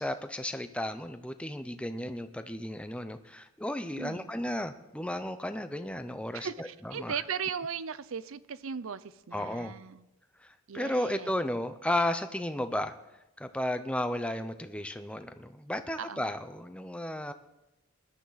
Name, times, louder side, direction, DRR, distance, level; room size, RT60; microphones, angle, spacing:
voice 1, 0.0-7.2 9.3-9.7 10.4-12.9 13.4-17.3, left 1 dB, 5° left, 0.6 m, -34 dB
voice 2, 4.0-4.3 6.3-10.1 10.7-11.3 16.0-16.3, right 6 dB, 70° right, 0.6 m, -37 dB
20.0 x 12.0 x 4.1 m
head